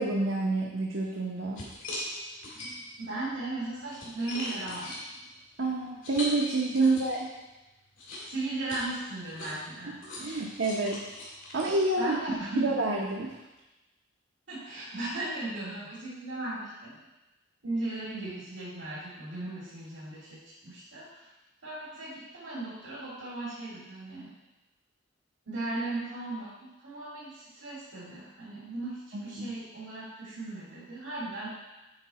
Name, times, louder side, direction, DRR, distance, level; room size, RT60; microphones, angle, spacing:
voice 1, 0.0-1.6 5.6-7.3 9.9-10.0 10.2-11.0 11.5-13.4 29.1-29.5, right 2 dB, 65° right, -2 dB, 0.8 m, -28 dB
sound 1, 1.1-1.2 1.5-3.0 3.6-7.4 8.0-12.4, left 1 dB, 75° left, 2.5 m, -40 dB
voice 2, 3.0-5.0 6.8-6.9 8.2-10.0 12.0-12.8 14.5-17.0 17.6-21.3 21.6-24.3 25.5-31.5, right 2 dB, 90° right, -10 dB, 2.5 m, -37 dB
9.0 x 4.7 x 4.1 m, 1.0 s
head